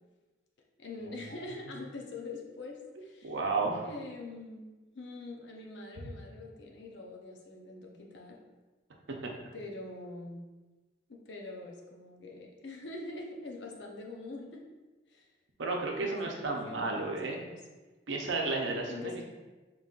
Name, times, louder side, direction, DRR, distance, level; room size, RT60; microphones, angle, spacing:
voice 1, 0.8-3.4 3.8-4.7 4.9-8.4 9.5-10.4 11.1-14.6 15.1-15.3 16.0-17.6 18.6-19.2, left 2 dB, 75° left, 0 dB, 0.7 m, -44 dB
voice 2, 3.2-3.8 9.2-9.3 15.6-17.4 18.1-19.2, right 3 dB, 85° right, 1 dB, 0.7 m, -32 dB
5.3 x 3.0 x 2.4 m, 1.2 s
head